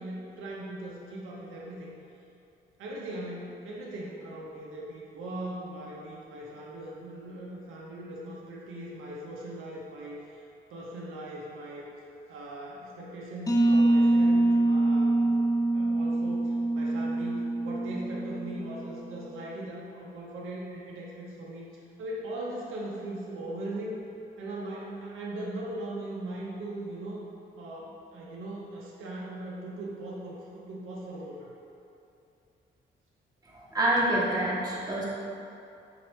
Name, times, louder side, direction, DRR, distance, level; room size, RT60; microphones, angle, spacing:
voice 1, 0.0-1.9 2.8-11.9 12.3-15.4 15.7-24.0 24.4-27.2 27.6-31.5, right 1 dB, 80° right, -4 dB, 0.6 m, -39 dB
sound 1, 13.5-19.0, right 2 dB, 15° left, 0.5 m, -25 dB
voice 2, 33.5-35.1, right 1 dB, 20° right, -6 dB, 1.0 m, -27 dB
3.9 x 3.1 x 3.0 m, 2.7 s
supercardioid pair, 60°, 21 cm